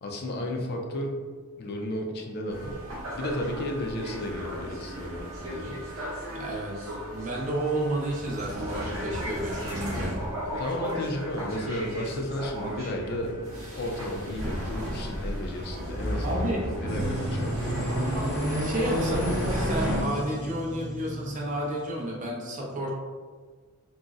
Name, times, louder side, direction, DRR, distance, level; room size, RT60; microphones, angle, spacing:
voice 1, 0.0-1.2 1.6-2.8 3.1-5.8 10.4-18.0, left 1 dB, 45° left, 1 dB, 0.3 m, -33 dB
sound 1, 2.5-20.0, equal, 70° right, 0.9 m, -33 dB
voice 2, 6.3-10.2 16.2-16.6 18.5-22.9, right 1 dB, 35° right, -2 dB, 0.5 m, -31 dB
sound 2, 16.9-22.1, right 1 dB, 70° left, 0.7 m, -35 dB
3.8 x 2.0 x 2.3 m, 1.5 s
head